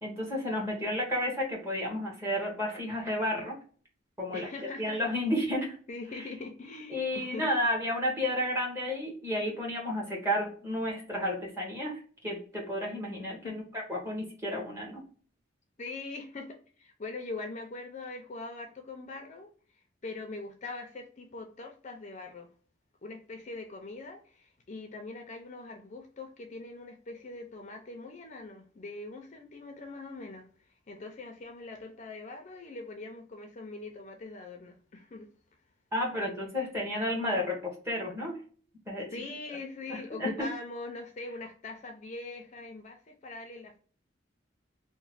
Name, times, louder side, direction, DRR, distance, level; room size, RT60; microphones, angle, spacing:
voice 1, 0.0-3.6 4.2-4.5 4.8-5.8 6.9-15.0 35.9-38.4 38.9-39.1 39.9-40.5, left 1 dB, 15° right, -2 dB, 1.1 m, -32 dB
voice 2, 4.3-5.1 5.9-7.5 13.4-13.6 15.8-22.5 23.0-35.3 39.1-43.8, left 3 dB, 40° left, 4 dB, 0.5 m, -42 dB
3.0 x 2.1 x 4.0 m, 0.43 s
head